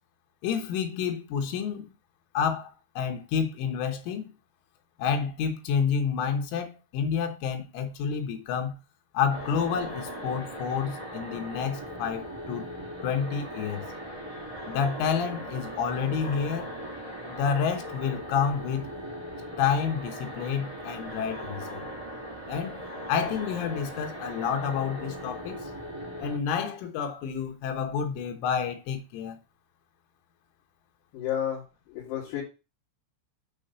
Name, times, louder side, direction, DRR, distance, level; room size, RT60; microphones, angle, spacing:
voice 1, 0.4-1.9 2.4-4.3 5.0-8.8 9.1-12.7 13.0-13.9 14.7-16.7 17.3-18.9 19.6-21.9 22.5-25.7 26.2-29.4, left 7 dB, 85° left, 3.7 m, -29 dB
sound 1, 9.3-26.4, equal, 25° right, 0.7 m, -39 dB
voice 2, 31.1-31.6 31.9-32.4, left 10 dB, 65° left, 4.2 m, -31 dB
8.5 x 3.3 x 6.6 m
omnidirectional pair, 5.5 m